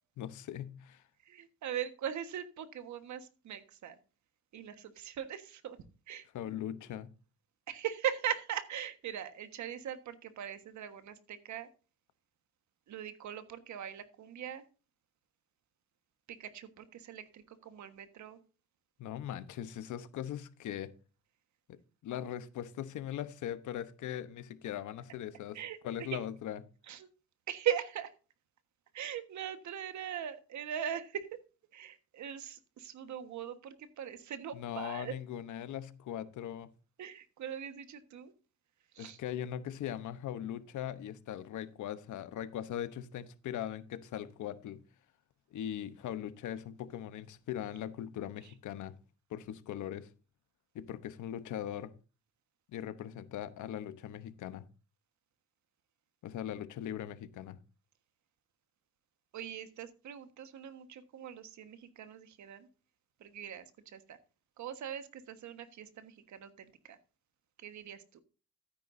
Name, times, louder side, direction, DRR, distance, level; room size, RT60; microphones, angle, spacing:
voice 1, 0.2-1.0 6.3-7.1 19.0-20.9 21.7-25.6 25.8-26.6 34.5-36.7 39.0-44.8 45.5-49.0 49.3-50.1 50.7-51.9 52.7-54.6 56.2-57.6, left 10 dB, 75° left, 1.0 m, -40 dB
voice 2, 1.2-4.0 4.5-5.8 6.1-6.3 7.7-11.7 12.9-14.6 16.3-18.4 25.5-26.2 26.9-27.1 27.5-28.1 28.9-31.4 31.7-35.1 37.0-38.3 38.9-39.2 59.3-62.7 63.2-64.2 64.6-67.0 67.6-68.2, right 9 dB, 70° right, 1.5 m, -40 dB
12.5 x 10.0 x 2.7 m
cardioid pair, 90°, 30 cm